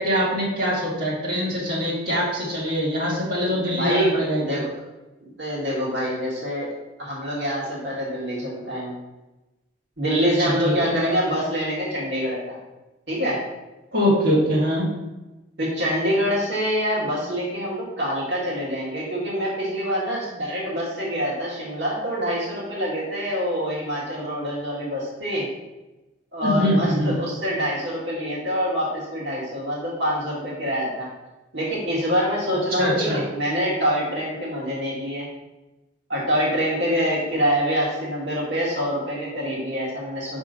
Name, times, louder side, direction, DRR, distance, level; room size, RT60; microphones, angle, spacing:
voice 1, 0.0-4.4 10.4-10.9 13.9-14.9 26.4-27.2 32.7-33.2, equal, 55° right, -8 dB, 1.9 m, -23 dB
voice 2, 3.5-4.7 5.4-6.7 7.0-8.9 10.0-12.6 13.1-13.4 15.6-25.5 26.3-31.1 31.5-35.3 36.1-40.4, equal, 70° right, -6 dB, 1.9 m, -25 dB
5.5 x 3.6 x 5.1 m, 1.1 s
head